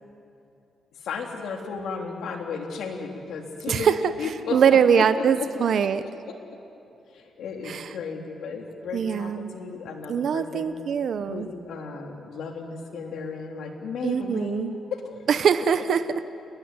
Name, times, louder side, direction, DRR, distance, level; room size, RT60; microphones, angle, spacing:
voice 1, 0.9-5.5 6.2-6.3 7.1-10.7 11.2-15.3, left 5 dB, 80° left, 2 dB, 3.6 m, -34 dB
voice 2, 4.5-6.0 7.7-7.9 8.9-9.6 10.1-11.5 14.0-14.7 15.3-16.0, right 7 dB, 60° right, 11 dB, 0.9 m, -22 dB
29.5 x 21.0 x 9.7 m, 2.7 s
cardioid pair, 120°, 0 cm